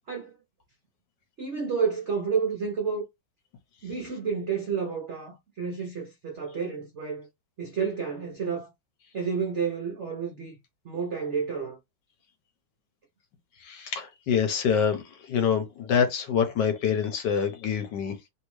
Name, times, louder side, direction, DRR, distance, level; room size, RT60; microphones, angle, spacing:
voice 1, 1.4-3.1 3.8-7.3 7.6-8.7 9.1-10.5 10.8-11.8, right 6 dB, 65° right, 0.7 m, -30 dB
voice 2, 13.6-18.2, left 7 dB, 70° left, 1.2 m, -26 dB
3.2 x 2.7 x 3.0 m
omnidirectional pair, 2.2 m